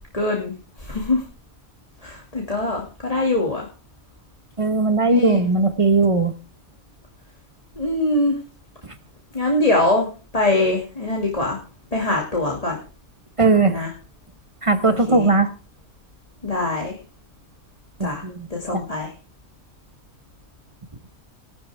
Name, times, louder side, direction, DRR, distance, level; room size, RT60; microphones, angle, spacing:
voice 1, 0.1-1.2 2.0-3.7 5.0-5.4 7.8-8.4 9.3-10.1 10.3-11.6 11.9-12.8 13.7-13.9 14.9-15.3 16.4-17.0 18.0-19.1, left 2 dB, 25° left, -1 dB, 2.5 m, -23 dB
voice 2, 4.6-6.3 8.8-8.9 13.4-13.8 14.6-15.5 18.0-18.5 18.7-18.8, right 3 dB, 25° right, 9 dB, 1.2 m, -18 dB
18.0 x 12.0 x 3.6 m, 0.35 s
omnidirectional pair, 1.5 m